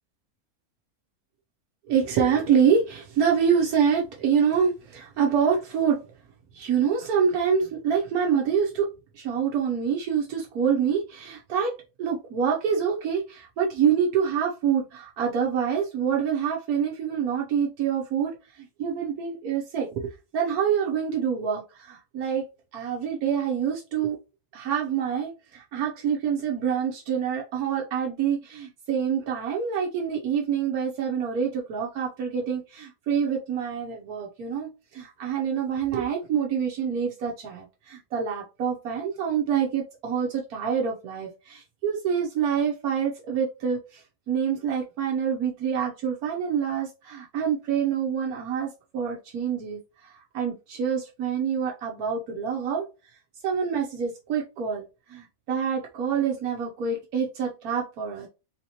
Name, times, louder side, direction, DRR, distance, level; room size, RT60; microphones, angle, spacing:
voice 1, 1.9-6.0 6.5-8.9 9.1-22.4 22.7-24.2 24.5-52.9 53.4-54.8 55.1-58.3, right 7 dB, 85° right, 1.2 m, -26 dB
3.8 x 2.8 x 2.8 m
omnidirectional pair, 1.5 m